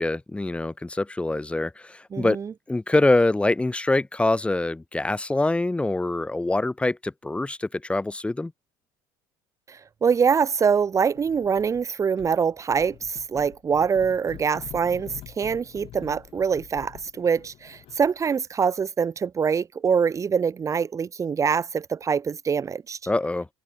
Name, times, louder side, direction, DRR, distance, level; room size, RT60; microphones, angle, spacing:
voice 1, 0.0-2.4 2.7-8.5 23.1-23.5, left 2 dB, 10° left, 2.4 m, -24 dB
voice 2, 2.1-2.5 9.7-23.0, right 6 dB, 30° right, 1.4 m, -24 dB
sound 1, 11.1-11.8 12.2-18.2, left 13 dB, 55° left, 3.9 m, -45 dB
supercardioid pair, 95°, 10 cm